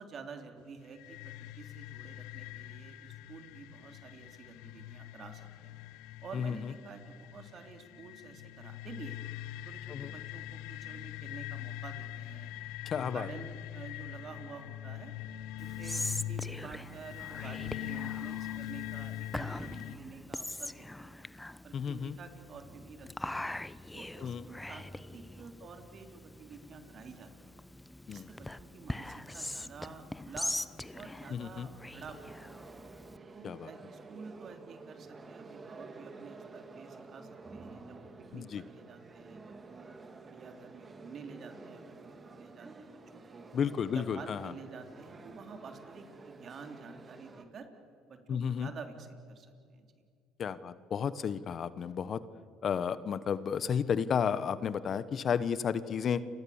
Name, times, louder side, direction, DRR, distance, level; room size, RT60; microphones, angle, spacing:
voice 1, 0.0-5.8 6.2-9.2 9.7-12.5 12.9-15.1 15.6-21.3 21.6-23.5 23.9-27.5 28.1-30.5 30.9-32.5 33.3-39.9 40.3-43.5 43.9-47.7 48.1-49.9, right 5 dB, 50° right, 5 dB, 3.6 m, -50 dB
sound 1, 1.0-19.9, left 12 dB, 80° left, 0.9 m, -42 dB
voice 2, 6.3-6.7 9.9-10.1 12.8-13.3 21.7-22.1 24.2-24.4 28.1-28.3 31.3-31.7 33.4-33.7 38.3-38.6 43.5-44.5 48.3-48.7 50.4-52.2 52.6-56.2, left 7 dB, 45° left, 15 dB, 1.1 m, -32 dB
Whispering, 15.6-33.2, left 1 dB, 10° left, 0.9 m, -42 dB
sound 2, 32.1-47.4, right 3 dB, 30° right, 2.8 m, -50 dB
30.0 x 24.5 x 7.3 m, 2.4 s
supercardioid pair, 80°, 0 cm